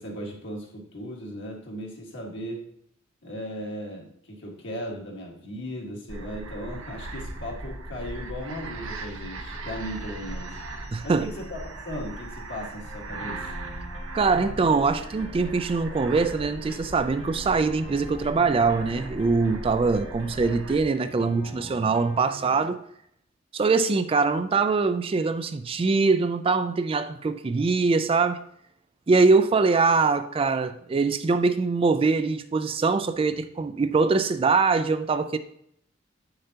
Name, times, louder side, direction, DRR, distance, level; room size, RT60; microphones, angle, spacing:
voice 1, 0.0-2.7 3.2-10.6 11.0-13.5, equal, 60° left, 1.7 m, -37 dB
sound 1, 6.1-20.8, right 2 dB, 80° right, 0.9 m, -38 dB
sound 2, 9.7-22.6, equal, 35° left, 1.3 m, -45 dB
voice 2, 10.9-11.3 14.1-22.8 23.5-28.4 29.1-35.4, right 4 dB, 25° right, 0.3 m, -23 dB
7.8 x 6.7 x 2.8 m
head